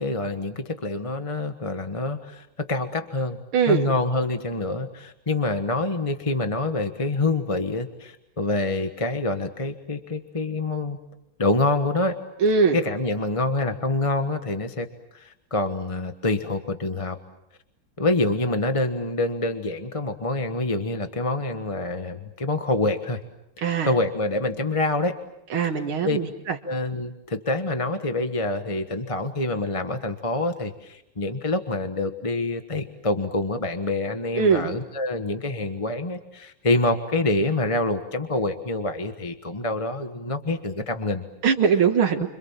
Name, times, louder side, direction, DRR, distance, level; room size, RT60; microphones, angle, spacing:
voice 1, 0.0-3.4 3.7-11.0 11.4-12.2 12.7-14.9 15.1-17.2 18.0-23.2 23.6-25.2 25.7-26.2 26.6-41.2, left 2 dB, 20° left, 7 dB, 1.1 m, -26 dB
voice 2, 3.5-3.9 12.4-12.8 23.6-23.9 25.5-26.6 34.4-34.7 41.4-42.3, right 6 dB, 80° right, 3 dB, 2.4 m, -21 dB
30.0 x 26.0 x 7.4 m, 0.83 s
omnidirectional pair, 2.3 m